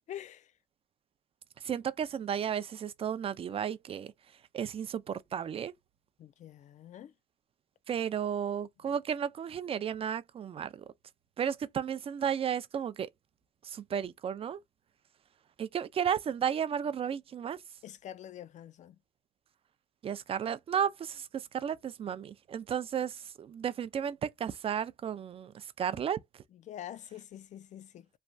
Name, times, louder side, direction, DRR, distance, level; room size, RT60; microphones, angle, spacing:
voice 1, 0.1-0.5 6.2-7.1 8.8-8.9 17.8-19.0 26.5-28.1, left 11 dB, 45° left, 0.4 m, -46 dB
voice 2, 1.6-4.1 4.5-5.7 7.9-10.8 11.4-13.1 13.6-14.6 15.6-17.6 20.0-26.2, right 8 dB, 35° right, 0.4 m, -33 dB
3.1 x 2.2 x 2.6 m
cardioid pair, 110°, 17 cm